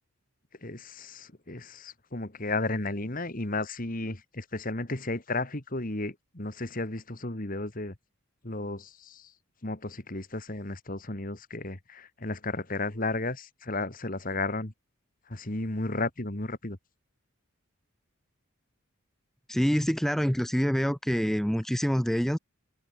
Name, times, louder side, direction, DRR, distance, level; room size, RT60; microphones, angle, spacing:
voice 1, 0.6-7.9 8.4-9.3 9.6-14.7 15.3-16.8, left 2 dB, 40° left, 2.1 m, -33 dB
voice 2, 19.5-22.4, equal, ahead, 1.4 m, -26 dB
head